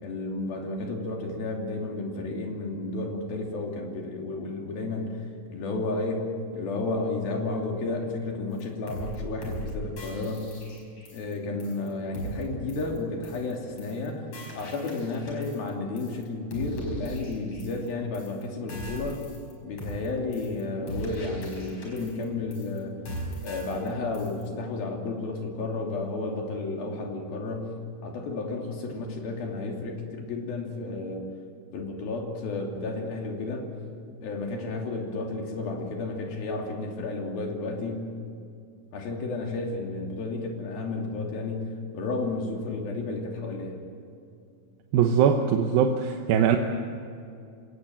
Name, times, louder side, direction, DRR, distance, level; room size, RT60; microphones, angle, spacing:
voice 1, 0.0-5.1 5.5-10.5 11.1-14.2 14.5-19.2 19.6-23.0 23.4-27.7 28.0-31.3 31.7-33.7 34.2-38.1 38.9-43.8, left 3 dB, 90° left, 1 dB, 4.7 m, -32 dB
sound 1, 8.6-8.7 8.9-9.2 9.4-9.7 10.0-11.3 11.6-11.9 12.1-12.4 12.7-13.0 13.2-13.5 13.8-14.1 14.3-15.7 16.0-16.2 16.5-17.9 18.1-18.4 18.7-19.5 19.8-20.1 20.3-20.6 20.9-22.2 22.5-22.8 23.0-23.9 24.1-24.4, right 1 dB, 40° left, 6.2 m, -39 dB
voice 2, 44.9-46.6, right 8 dB, 85° right, 4 dB, 2.8 m, -21 dB
26.5 x 17.5 x 7.8 m, 2.5 s
omnidirectional pair, 4.1 m